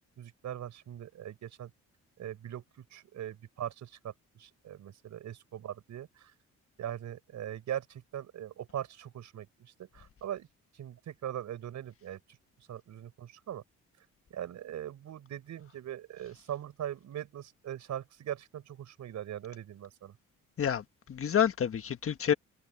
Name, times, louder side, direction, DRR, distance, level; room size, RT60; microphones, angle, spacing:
voice 1, 0.2-1.7 2.2-6.3 6.8-10.5 10.7-12.4 12.7-13.6 14.0-20.2, right 11 dB, 70° right, 4.8 m, -41 dB
voice 2, 20.6-22.3, left 8 dB, 45° left, 1.5 m, -28 dB
cardioid pair, 90°, 30 cm